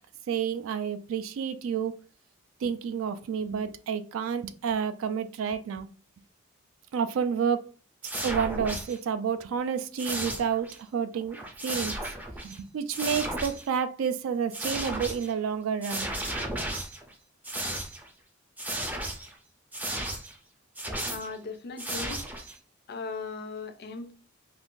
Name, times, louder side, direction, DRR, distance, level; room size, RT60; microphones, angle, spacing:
voice 1, 0.3-2.0 2.6-5.9 6.9-7.7 8.2-11.4 11.6-12.0 12.4-16.1, right 7 dB, 80° right, 0.3 m, -30 dB
sound 1, 8.0-9.0 10.0-10.8 11.2-12.6 12.9-13.7 14.5-15.3 15.8-17.1 17.4-18.1 18.6-19.3 19.7-20.3 20.8-21.3 21.8-22.6, right 1 dB, 10° right, 0.4 m, -34 dB
voice 2, 21.1-22.2 22.9-24.1, left 4 dB, 50° left, 0.4 m, -38 dB
2.5 x 2.3 x 3.6 m
head